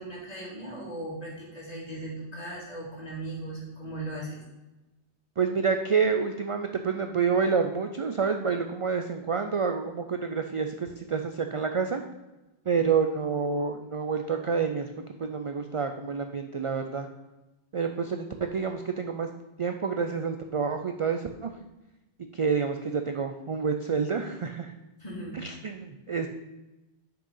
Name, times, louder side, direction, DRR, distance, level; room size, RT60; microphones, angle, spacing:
voice 1, 0.0-4.4 25.0-25.4, right 1 dB, 35° left, -5 dB, 2.6 m, -38 dB
voice 2, 5.4-12.0 12.7-14.9 15.2-17.1 17.7-19.3 19.6-21.5 22.3-24.7 25.3-26.3, right 5 dB, 50° right, 6 dB, 0.3 m, -28 dB
6.4 x 5.6 x 5.5 m, 1.0 s
omnidirectional pair, 1.1 m